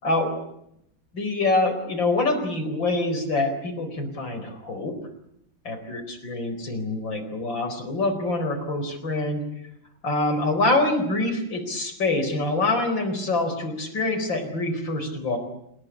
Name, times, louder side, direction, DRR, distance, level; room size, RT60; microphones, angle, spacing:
voice 1, 1.1-4.9 5.7-9.4 10.0-15.4, left 2 dB, 60° left, 8 dB, 5.2 m, -25 dB
28.5 x 20.0 x 8.5 m, 0.78 s
omnidirectional pair, 2.3 m